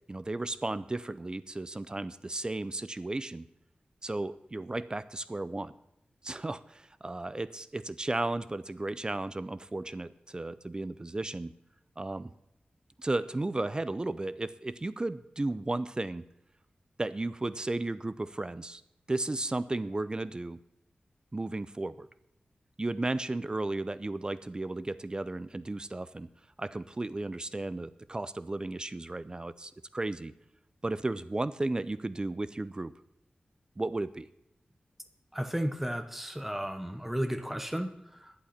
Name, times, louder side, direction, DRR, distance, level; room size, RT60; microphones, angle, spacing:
voice 1, 0.1-3.5 4.0-5.7 6.2-11.5 12.0-12.3 13.0-16.2 17.0-18.8 19.1-20.6 21.3-22.1 22.8-26.3 26.6-30.3 30.8-32.9 33.8-34.3, right 2 dB, 25° right, 16 dB, 0.5 m, -34 dB
voice 2, 35.3-38.3, equal, 5° right, 9 dB, 0.8 m, -34 dB
11.5 x 11.0 x 5.7 m, 0.82 s
wide cardioid pair, 95°, 3 cm